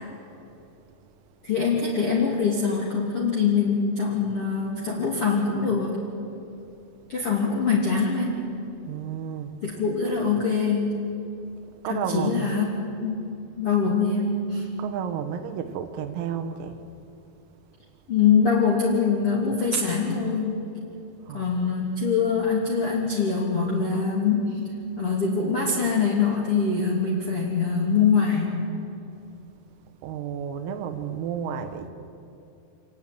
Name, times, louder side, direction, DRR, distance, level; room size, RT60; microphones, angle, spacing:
voice 1, 1.4-6.0 7.1-8.4 9.6-11.1 11.8-12.6 13.0-13.3 13.6-14.7 18.1-20.6 21.3-24.6 25.0-28.6, left 5 dB, 35° left, -4 dB, 2.9 m, -23 dB
voice 2, 8.9-9.8 11.8-12.6 14.8-16.8 21.3-21.7 30.0-31.9, right 8 dB, 90° right, 8 dB, 4.1 m, -32 dB
27.0 x 19.0 x 9.2 m, 2.8 s
omnidirectional pair, 5.9 m